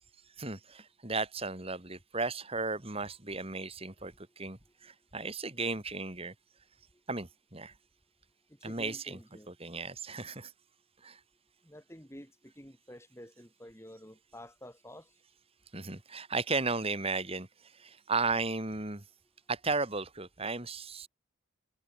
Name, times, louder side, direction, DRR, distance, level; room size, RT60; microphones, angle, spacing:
voice 1, 0.4-6.3 7.1-7.7 8.6-9.2 9.5-10.5 11.0-11.2 15.7-17.5 17.8-19.0 19.5-21.1, right 3 dB, 25° right, 2.8 m, -35 dB
voice 2, 8.6-9.5 11.6-15.1, equal, 10° left, 8.0 m, -50 dB
head